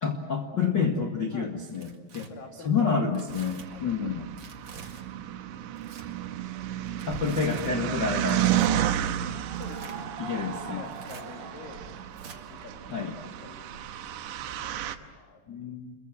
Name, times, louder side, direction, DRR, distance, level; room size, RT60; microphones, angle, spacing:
voice 1, 0.0-2.3 2.6-4.2 7.1-8.6 10.2-10.8 12.9-13.1 15.5-15.9, left 5 dB, 90° left, 1 dB, 0.9 m, -28 dB
Tearing, 1.6-2.3 3.1-3.7 4.4-5.0 5.7-6.0 6.9-7.8 8.5-8.7 9.5-10.0 10.8-11.2 12.2-12.4, right 5 dB, 45° right, 1.7 m, -47 dB
voice 2, 2.3-3.3 3.7-4.3 9.6-11.9 12.5-15.8, left 4 dB, 55° left, 3 dB, 4.0 m, -48 dB
sound 1, 3.3-15.0, right 11 dB, 90° right, 3.3 m, -32 dB
sound 2, 9.3-14.0, right 5 dB, 65° right, 4.2 m, -43 dB
28.5 x 22.5 x 7.6 m, 1.3 s
omnidirectional pair, 5.0 m